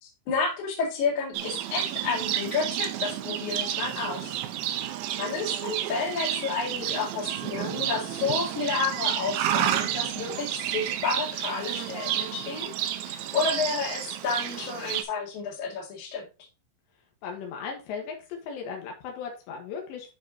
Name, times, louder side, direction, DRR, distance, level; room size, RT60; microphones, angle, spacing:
voice 1, 0.0-4.4 5.2-12.7 13.1-16.2, left 4 dB, 50° left, 0 dB, 2.9 m, -30 dB
Livestock farm animals working animals, 1.3-15.0, right 12 dB, 80° right, 2.8 m, -31 dB
voice 2, 17.2-20.1, left 6 dB, 80° left, 2 dB, 3.5 m, -37 dB
9.9 x 5.0 x 2.8 m, 0.30 s
omnidirectional pair, 5.0 m